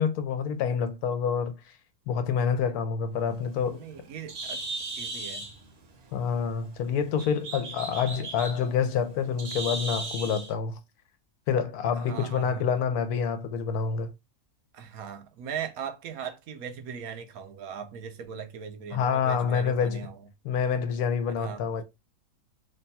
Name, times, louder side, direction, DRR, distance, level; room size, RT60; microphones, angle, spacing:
voice 1, 0.0-1.6 2.1-3.8 6.1-10.8 11.5-14.1 18.9-20.1 20.4-21.8, left 6 dB, 80° left, 1.1 m, -27 dB
Bird, 3.2-10.5, right 2 dB, 50° right, 1.0 m, -38 dB
voice 2, 3.7-4.7 5.0-5.5 12.0-12.7 14.7-20.2 21.4-21.6, right 7 dB, 70° right, 1.1 m, -39 dB
3.4 x 2.3 x 4.0 m
omnidirectional pair, 1.6 m